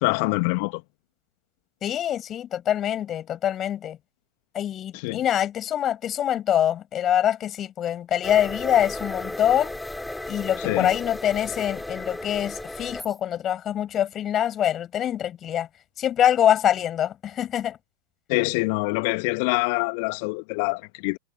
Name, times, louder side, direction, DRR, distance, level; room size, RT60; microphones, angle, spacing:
voice 1, 0.0-0.8 4.9-5.2 10.6-10.9 18.3-21.2, left 32 dB, 45° left, 2.3 m, -25 dB
voice 2, 1.8-4.0 4.5-9.7 10.3-15.7 16.0-17.8, left 10 dB, 30° left, 6.5 m, -24 dB
sound 1, 8.2-13.1, left 1 dB, 5° left, 3.5 m, -35 dB
figure-of-eight pair, 90°, 0 cm